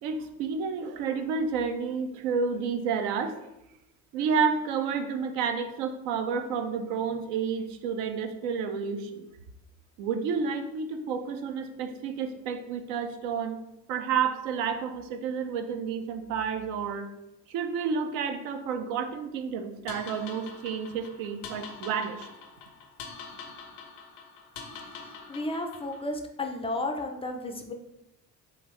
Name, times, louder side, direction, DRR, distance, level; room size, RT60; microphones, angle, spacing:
voice 1, 0.0-3.4 4.1-9.3 10.0-13.6 13.9-17.1 17.5-22.3, right 6 dB, 65° right, 7 dB, 0.6 m, -30 dB
sound 1, 19.9-26.1, left 5 dB, 70° left, 0.7 m, -45 dB
voice 2, 24.9-27.7, left 2 dB, 15° left, 3 dB, 0.3 m, -33 dB
3.5 x 2.3 x 3.1 m, 0.89 s
hypercardioid pair, 55°, 49 cm